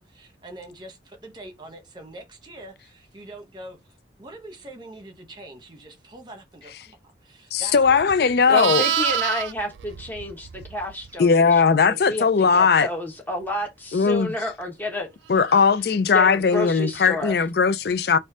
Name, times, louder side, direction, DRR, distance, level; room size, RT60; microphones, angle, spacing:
voice 1, 0.0-3.8 4.2-8.3, right 1 dB, 25° right, 1.1 m, -43 dB
voice 2, 7.5-8.8 11.2-12.9 13.9-14.3 15.3-18.2, left 5 dB, 60° left, 0.4 m, -18 dB
Livestock farm animals working animals, 7.8-11.1 15.4-15.7, right 10 dB, 90° right, 0.4 m, -28 dB
voice 3, 8.5-11.6 11.9-15.1 16.1-17.3, left 1 dB, 10° left, 1.3 m, -30 dB
4.2 x 2.6 x 4.7 m
head